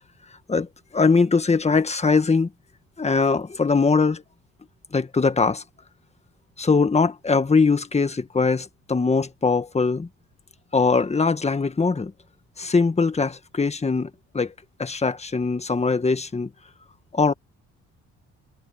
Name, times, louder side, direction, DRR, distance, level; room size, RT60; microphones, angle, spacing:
voice 1, 0.5-2.5 3.0-4.2 4.9-5.6 6.6-10.1 10.7-12.1 12.6-14.5 14.8-16.5 17.1-17.3, left 4 dB, 20° left, 1.6 m, -21 dB
cardioid pair, 90°, 30 cm